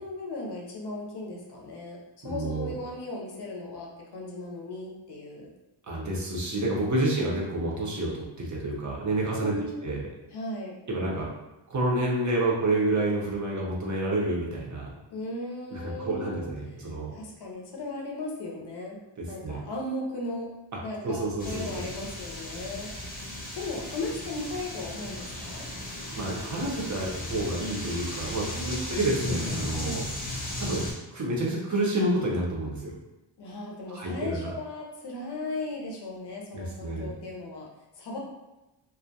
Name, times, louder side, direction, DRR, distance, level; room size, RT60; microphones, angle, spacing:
voice 1, 0.0-2.0 2.2-5.5 6.9-7.4 9.4-9.8 10.3-10.7 15.1-16.5 16.8-19.0 19.3-20.5 20.8-25.7 28.6-29.1 29.7-30.1 33.4-37.7 37.9-38.2, left 2 dB, 55° left, -2 dB, 0.6 m, -37 dB
voice 2, 2.2-2.7 5.9-9.5 9.8-10.0 10.9-11.3 11.7-15.0 15.7-17.1 19.4-19.6 21.0-21.8 26.1-30.0 30.6-30.9 31.1-32.9 33.9-34.5 36.5-37.1, right 2 dB, 40° right, -4 dB, 0.6 m, -29 dB
sound 1, 21.4-30.9, left 1 dB, 20° left, 0.6 m, -36 dB
2.3 x 2.1 x 2.6 m, 1.0 s
wide cardioid pair, 125°, 49 cm